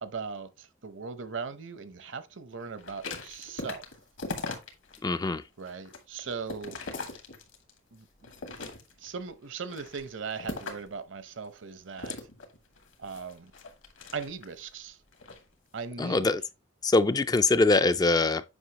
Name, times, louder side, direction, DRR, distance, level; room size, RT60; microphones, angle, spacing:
voice 1, 0.0-3.8 5.6-6.8 7.9-8.7 9.0-12.2 13.0-13.5 14.1-15.0 15.7-16.4, right 5 dB, 65° right, 0.7 m, -39 dB
sound 1, 2.8-5.0 5.4-7.8 8.2-9.1 9.6-11.0 12.0-14.6 15.1-15.4, left 3 dB, 70° left, 1.7 m, -40 dB
voice 2, 5.0-5.4 16.0-16.4 16.8-18.4, left 3 dB, 20° left, 0.3 m, -23 dB
8.0 x 5.5 x 2.9 m
head